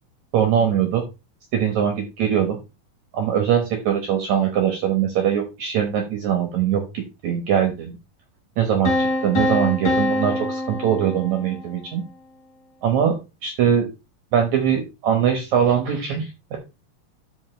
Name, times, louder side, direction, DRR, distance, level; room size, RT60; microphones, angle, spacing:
voice 1, 0.3-1.0 1.5-2.6 3.1-8.0 8.6-12.0 12.8-13.9 14.3-16.6, right 9 dB, 65° right, 4 dB, 2.2 m, -22 dB
sound 1, 8.9-11.8, left 1 dB, 55° left, 4.2 m, -24 dB
12.5 x 5.3 x 3.2 m, 0.26 s
omnidirectional pair, 4.1 m